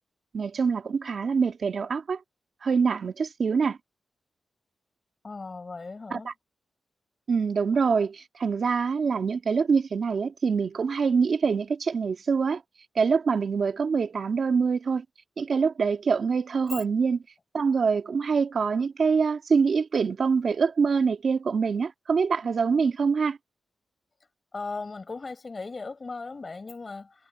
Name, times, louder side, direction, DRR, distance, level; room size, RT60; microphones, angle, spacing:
voice 1, 0.3-2.2 2.6-3.8 6.1-6.3 7.3-12.6 13.0-15.0 15.4-17.2 17.5-23.4, right 5 dB, 55° right, 2.0 m, -25 dB
voice 2, 5.2-6.3 16.7-16.8 24.5-27.1, left 3 dB, 30° left, 5.4 m, -37 dB
wide cardioid pair, 130°, 0 cm